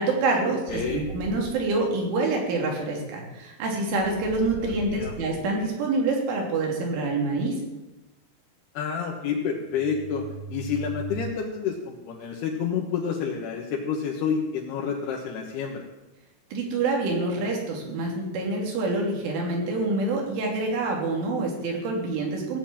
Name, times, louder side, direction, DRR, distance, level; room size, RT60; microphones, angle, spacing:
voice 1, 0.0-7.6 16.5-22.6, right 3 dB, 90° right, 0 dB, 5.5 m, -26 dB
voice 2, 0.7-1.0 4.6-5.1 8.7-10.2 10.5-15.9, left 6 dB, 70° left, -1 dB, 3.1 m, -29 dB
sound 1, 0.7-1.7 3.9-5.5 9.7-11.3, right 4 dB, 65° right, 2.3 m, -39 dB
16.0 x 8.3 x 8.8 m, 1.0 s
omnidirectional pair, 5.4 m